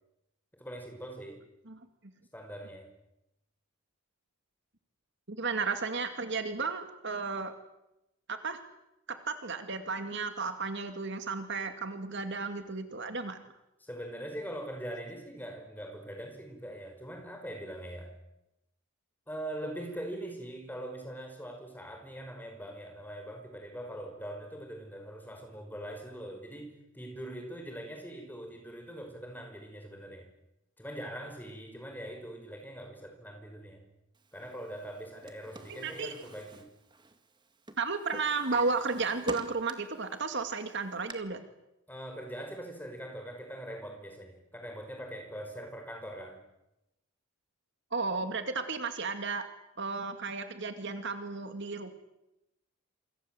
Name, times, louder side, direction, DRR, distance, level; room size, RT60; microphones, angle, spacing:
voice 1, 0.5-1.4 2.3-2.9 13.8-18.1 19.3-30.3 30.8-33.8 34.3-36.6 41.9-46.4, right 1 dB, 10° left, 4 dB, 5.6 m, -42 dB
voice 2, 5.3-7.5 8.3-8.6 9.1-13.4 35.7-36.1 37.8-41.4 47.9-49.5 49.8-51.9, right 4 dB, 50° right, 7 dB, 2.3 m, -33 dB
Drawer open or close, 34.9-37.4 37.7-40.0 40.4-41.1, right 2 dB, 20° right, 2.0 m, -44 dB
27.5 x 26.5 x 7.9 m, 0.89 s
head